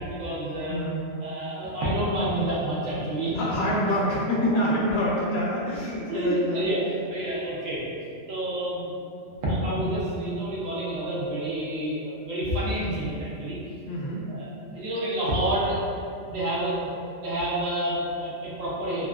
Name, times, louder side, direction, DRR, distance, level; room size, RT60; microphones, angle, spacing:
voice 1, 0.0-0.8 1.2-3.3 6.1-6.8 7.1-7.8 8.3-9.0 9.4-13.6 14.3-14.4 14.7-16.9 17.2-19.1, right 1 dB, 85° right, -7 dB, 1.1 m, -28 dB
voice 2, 0.7-1.0 3.3-6.6 13.9-14.2, equal, 60° left, -5 dB, 0.8 m, -26 dB
2.8 x 2.4 x 2.2 m, 2.4 s
omnidirectional pair, 1.3 m